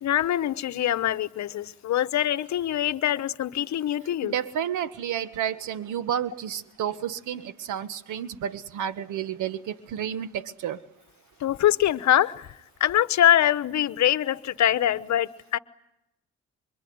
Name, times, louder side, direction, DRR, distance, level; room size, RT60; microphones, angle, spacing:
voice 1, 0.0-4.4 11.4-12.5 12.8-15.6, left 11 dB, 65° left, 1.1 m, -23 dB
voice 2, 4.2-10.8, right 9 dB, 80° right, 1.6 m, -31 dB
26.0 x 24.5 x 9.5 m
cardioid pair, 90°, 30 cm